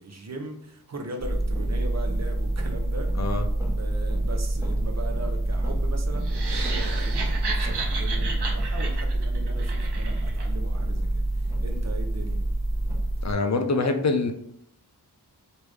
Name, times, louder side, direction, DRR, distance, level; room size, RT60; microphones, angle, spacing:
voice 1, 0.0-3.2 3.6-12.4, right 2 dB, 45° right, 3 dB, 0.7 m, -39 dB
sound 1, 1.2-13.3, right 1 dB, 5° right, 1.0 m, -26 dB
sound 2, 6.2-10.5, right 4 dB, 85° right, 0.7 m, -34 dB
voice 2, 13.2-14.3, left 3 dB, 45° left, 6 dB, 0.4 m, -24 dB
3.2 x 2.6 x 3.2 m, 0.69 s
wide cardioid pair, 60°, 39 cm